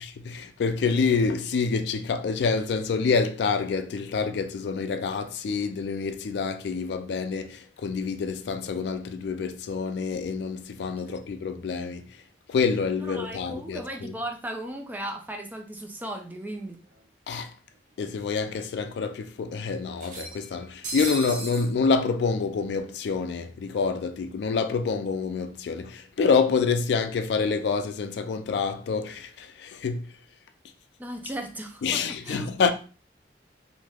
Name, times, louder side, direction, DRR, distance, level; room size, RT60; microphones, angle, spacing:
voice 1, 0.0-12.2 12.5-14.1 17.3-17.5 18.0-30.2 31.8-32.7, left 5 dB, 75° left, 0.3 m, -27 dB
voice 2, 13.0-16.8 31.0-32.5, right 1 dB, 10° right, 0.4 m, -36 dB
sound 1, 16.6-16.7 17.0-17.1 18.1-18.2 18.6-18.7 20.0-21.7, right 3 dB, 45° right, 0.7 m, -36 dB
3.2 x 2.6 x 2.3 m
head